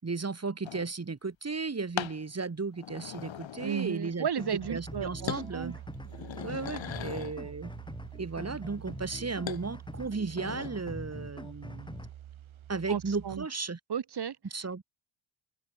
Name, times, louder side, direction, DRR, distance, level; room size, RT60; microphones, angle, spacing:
voice 1, 0.0-5.8 6.4-7.7 8.2-12.1 12.7-13.8 14.5-14.8, right 4 dB, 30° right, 5.6 m, -35 dB
sound 1, 0.6-0.9 2.0-2.2 2.7-4.2 4.5-5.0 5.3-5.5 5.9-7.4 9.5-9.7 10.1-10.7, left 10 dB, 65° left, 5.1 m, -39 dB
voice 2, 3.6-5.7 12.9-13.4 13.9-14.4, right 8 dB, 50° right, 3.3 m, -34 dB
sound 2, 4.4-12.1, left 1 dB, 10° left, 2.9 m, -44 dB
sound 3, 4.6-13.5, right 11 dB, 70° right, 5.1 m, -47 dB
open air
supercardioid pair, 60°, 50 cm